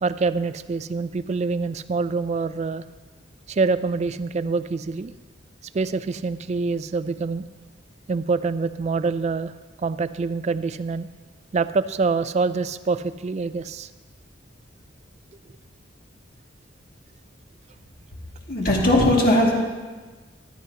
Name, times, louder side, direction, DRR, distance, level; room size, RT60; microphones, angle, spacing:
voice 1, 0.0-2.8 3.5-5.1 5.7-7.4 8.1-9.5 9.8-11.1 11.5-13.9, right 4 dB, 35° right, 14 dB, 0.3 m, -25 dB
voice 2, 18.5-19.5, left 1 dB, 50° left, -2 dB, 2.2 m, -18 dB
15.0 x 11.5 x 2.8 m, 1.4 s
head